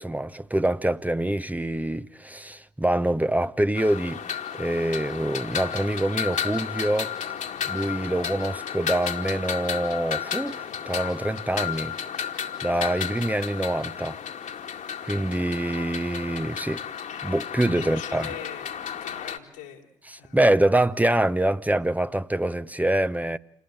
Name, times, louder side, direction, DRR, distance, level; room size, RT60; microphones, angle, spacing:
voice 1, 0.0-4.2 4.5-7.1 7.7-11.9 12.3-14.2 15.0-16.8 17.2-18.3 20.3-23.4, right 1 dB, 10° right, 1.1 m, -25 dB
sound 1, 3.7-19.4, left 8 dB, 60° left, 2.2 m, -33 dB
voice 2, 17.7-19.9 20.2-20.7, left 9 dB, 85° left, 3.3 m, -42 dB
28.0 x 19.5 x 9.2 m
hypercardioid pair, 40°, 14 cm